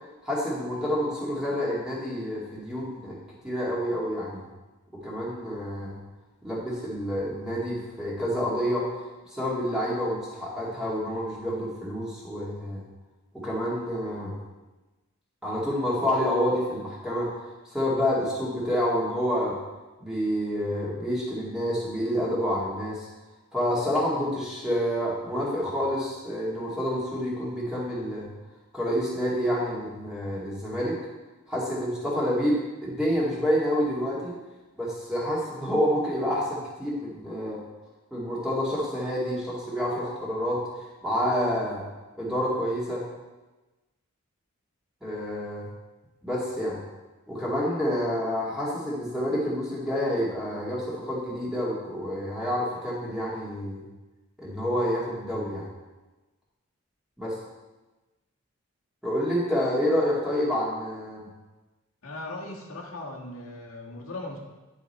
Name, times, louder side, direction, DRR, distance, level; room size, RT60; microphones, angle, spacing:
voice 1, 0.2-3.2 3.4-4.4 5.0-6.0 6.4-8.9 9.3-12.8 13.3-14.3 15.4-17.3 17.7-19.5 20.0-23.1 23.5-28.3 28.7-31.0 31.5-34.3 34.8-37.6 38.1-40.6 41.0-41.8 42.2-43.0 45.0-45.6 46.2-46.8 47.3-53.8 54.4-55.6 57.2-57.3 59.0-61.3, equal, 5° right, -6 dB, 2.0 m, -28 dB
voice 2, 62.0-64.4, left 2 dB, 85° left, -2 dB, 1.5 m, -38 dB
10.0 x 5.0 x 4.2 m, 1.1 s
head